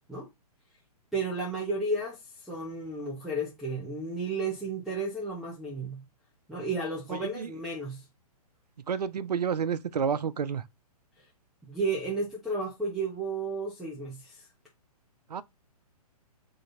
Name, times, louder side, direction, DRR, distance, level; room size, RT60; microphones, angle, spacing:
voice 1, 1.1-6.0 6.5-8.0 11.7-14.5, right 2 dB, ahead, 1.3 m, -33 dB
voice 2, 8.9-10.6 15.3-15.4, right 7 dB, 80° right, 0.6 m, -29 dB
3.8 x 3.2 x 4.1 m
hypercardioid pair, 130°, 20 cm